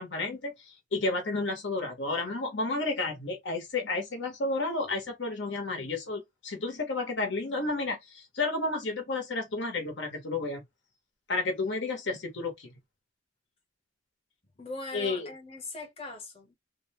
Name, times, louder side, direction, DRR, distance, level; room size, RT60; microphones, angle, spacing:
voice 1, 0.0-10.6 11.3-12.7 14.9-15.3, left 3 dB, 65° left, 0.8 m, -31 dB
voice 2, 14.6-16.5, left 3 dB, 30° left, 0.9 m, -40 dB
2.5 x 2.1 x 2.8 m
head